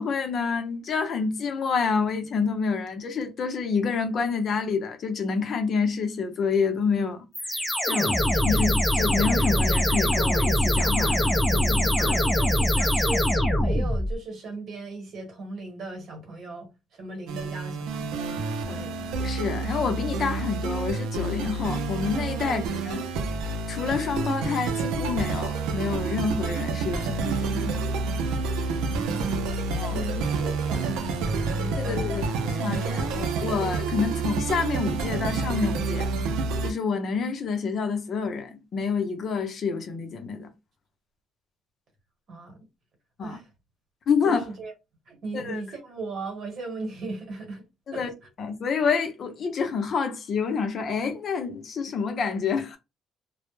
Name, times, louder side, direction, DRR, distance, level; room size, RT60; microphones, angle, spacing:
voice 1, 0.0-7.6 7.9-12.2 18.7-18.9 19.2-23.0 23.7-27.8 29.8-30.0 31.8-36.1 36.6-40.5 43.2-43.4 44.1-44.4 45.3-45.6 47.9-48.1 48.4-52.8, left 5 dB, 50° left, 0.6 m, -28 dB
sound 1, 7.3-14.2, left 1 dB, ahead, 0.6 m, -23 dB
voice 2, 12.0-13.3 13.6-19.1 22.4-22.7 28.9-29.5 29.9-32.3 42.3-42.7 43.2-43.5 44.2-44.7 45.1-47.6 47.9-48.1, right 2 dB, 50° right, 1.1 m, -37 dB
sound 2, 17.3-36.7, right 4 dB, 90° right, 0.4 m, -29 dB
2.1 x 2.0 x 3.1 m
cardioid pair, 115°, 0 cm